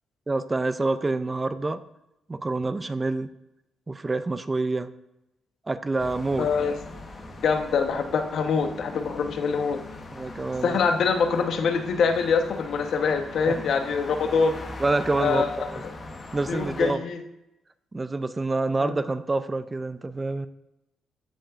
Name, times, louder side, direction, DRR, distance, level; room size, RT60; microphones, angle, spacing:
voice 1, 0.3-1.8 2.3-3.3 3.9-4.9 5.7-6.5 10.1-10.8 13.5-13.7 14.8-15.8 16.3-17.0 17.9-20.5, right 3 dB, 20° right, 12 dB, 0.5 m, -27 dB
sound 1, 6.0-16.9, left 2 dB, 35° left, 1.2 m, -41 dB
voice 2, 6.4-6.7 7.4-9.8 10.6-14.6 15.2-15.7 16.5-17.2 18.8-19.0, left 5 dB, 65° left, 6 dB, 1.0 m, -24 dB
14.5 x 5.4 x 2.5 m, 0.90 s
cardioid pair, 90°, 0 cm